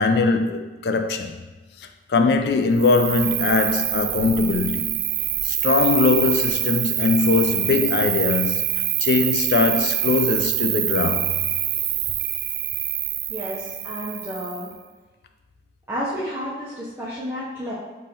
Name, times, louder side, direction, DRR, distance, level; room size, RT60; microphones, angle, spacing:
voice 1, 0.0-1.4 1.8-5.0 5.4-11.4, left 4 dB, 60° left, 0.3 m, -21 dB
Cricket, 2.8-14.7, right 12 dB, 60° right, 0.3 m, -25 dB
voice 2, 13.3-14.7 15.9-17.7, equal, 15° right, 0.5 m, -31 dB
5.3 x 3.2 x 2.8 m
head